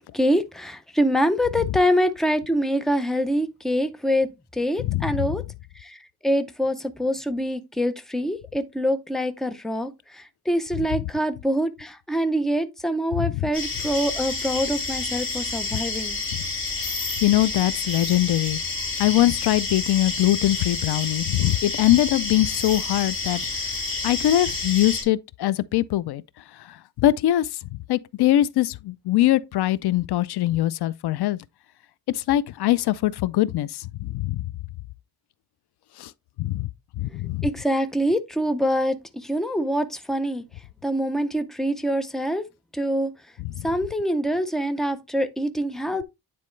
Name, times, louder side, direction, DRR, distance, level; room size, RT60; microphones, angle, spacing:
voice 1, 0.1-5.4 5.8-16.2 37.4-40.4 40.8-42.4 42.7-43.1 43.6-46.0, equal, ahead, 0.6 m, -25 dB
voice 2, 4.8-5.2 13.2-13.3 17.2-18.6 19.0-23.4 24.0-26.2 26.6-27.5 27.9-31.4 32.1-34.4 36.0-36.1 36.4-36.7 37.0-37.5 43.6-43.7, left 14 dB, 85° left, 0.5 m, -22 dB
sound 1, 13.5-25.0, left 3 dB, 30° left, 3.0 m, -29 dB
9.5 x 4.2 x 3.2 m
wide cardioid pair, 145°, 38 cm